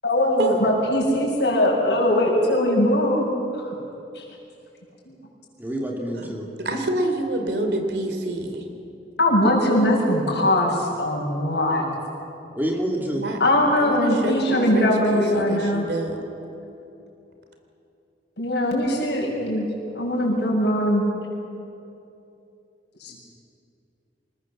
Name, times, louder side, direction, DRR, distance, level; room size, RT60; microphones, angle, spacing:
voice 1, 0.0-3.3 3.5-3.7 4.2-4.3 5.1-5.2 9.2-11.8 13.4-15.9 18.4-19.7 20.0-21.0 23.0-23.1, left 1 dB, 70° left, -3 dB, 7.1 m, -21 dB
voice 2, 5.6-6.5 12.5-13.3, right 1 dB, 10° right, 0 dB, 2.8 m, -27 dB
voice 3, 6.6-8.6 13.1-13.4 13.8-16.2, right 1 dB, 70° right, 5 dB, 3.0 m, -27 dB
25.5 x 20.5 x 7.5 m, 2.7 s
head